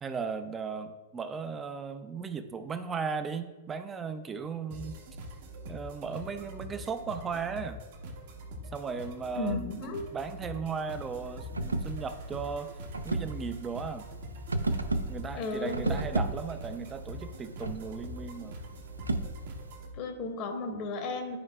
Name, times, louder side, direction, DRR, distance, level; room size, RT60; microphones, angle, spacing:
voice 1, 0.0-5.0 5.7-7.8 8.7-12.7 13.0-14.1 15.1-18.7, right 5 dB, 20° right, 9 dB, 0.6 m, -36 dB
sound 1, 4.7-19.9, equal, 55° right, 1.1 m, -44 dB
voice 2, 9.3-10.0 15.3-15.8 19.9-21.4, left 3 dB, 40° left, 5 dB, 0.9 m, -34 dB
sound 2, 10.9-19.8, right 2 dB, 85° right, 0.5 m, -34 dB
11.0 x 4.8 x 2.3 m, 1.2 s
figure-of-eight pair, 105°, 0 cm